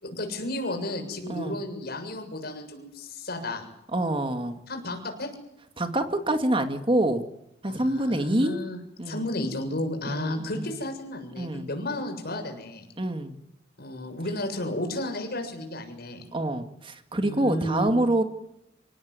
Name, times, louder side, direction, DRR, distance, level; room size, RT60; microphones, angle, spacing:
voice 1, 0.0-3.6 4.7-5.3 7.7-8.8 9.1-12.8 13.8-16.2 17.2-17.9, left 1 dB, 55° left, 4 dB, 7.3 m, -33 dB
voice 2, 3.9-4.6 5.8-7.3 7.6-8.6 9.0-9.2 10.1-10.7 11.4-11.7 13.0-13.4 16.3-18.2, right 1 dB, 30° right, 7 dB, 2.1 m, -26 dB
28.0 x 18.0 x 9.7 m, 0.83 s
head